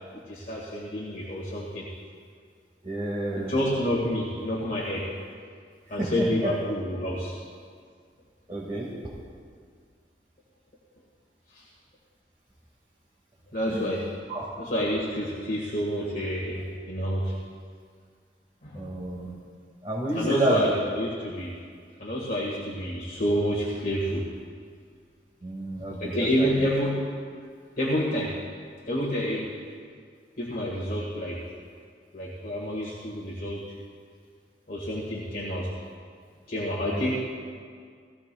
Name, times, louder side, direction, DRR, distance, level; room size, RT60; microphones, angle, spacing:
voice 1, 0.3-1.9 3.4-5.1 5.9-7.3 13.5-14.1 14.6-17.3 18.6-18.9 20.2-21.5 22.0-24.3 26.0-27.1 27.8-28.4 28.9-29.5 30.4-31.4 32.1-33.6 34.7-35.7 36.5-37.2, equal, 50° left, -5 dB, 1.7 m, -28 dB
voice 2, 2.8-3.5 6.0-6.5 8.5-8.9 13.7-13.9 14.3-14.4 18.7-19.3 19.8-20.7 25.4-26.7 36.9-37.1, right 1 dB, 30° right, -7 dB, 1.8 m, -30 dB
18.5 x 15.0 x 2.3 m, 2.1 s
head